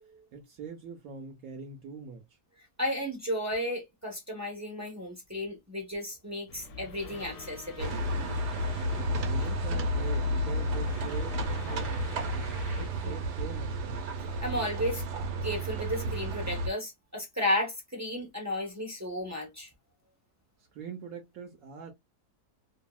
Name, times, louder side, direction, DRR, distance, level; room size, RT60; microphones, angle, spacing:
voice 1, 0.3-2.4 9.2-14.1 20.7-21.9, right 6 dB, 70° right, 1.0 m, -43 dB
voice 2, 2.8-8.0 13.0-13.1 14.4-15.0 15.4-19.7, left 1 dB, 15° right, 0.5 m, -33 dB
sound 1, 6.5-12.9, left 4 dB, 70° left, 1.0 m, -46 dB
sound 2, 7.0-12.5, right 1 dB, 5° left, 0.9 m, -52 dB
sound 3, 7.8-16.7, equal, 90° right, 1.3 m, -31 dB
2.7 x 2.7 x 2.2 m
omnidirectional pair, 1.7 m